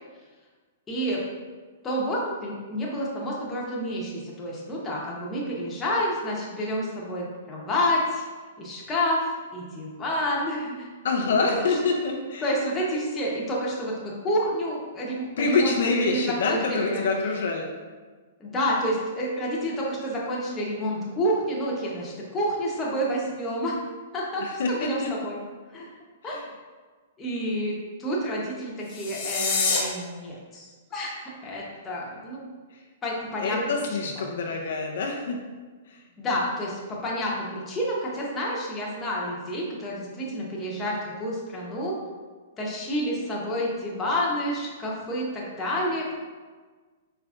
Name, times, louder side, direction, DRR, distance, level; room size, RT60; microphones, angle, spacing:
voice 1, 0.9-1.2 1.8-8.2 8.6-10.9 12.4-15.7 16.1-17.0 18.4-23.7 24.1-25.4 25.7-25.9 26.2-26.4 27.2-32.4 33.0-33.6 34.1-34.2 36.2-42.0 42.6-46.1, equal, 15° left, -4 dB, 0.9 m, -29 dB
voice 2, 11.0-12.5 15.4-17.7 24.4-25.1 26.2-26.4 33.4-35.4 35.9-36.0, left 3 dB, 70° left, 1 dB, 0.5 m, -26 dB
sound 1, 28.8-29.8, left 4 dB, 40° left, 1.0 m, -26 dB
4.8 x 3.3 x 2.4 m, 1.4 s
hypercardioid pair, 145°, 0 cm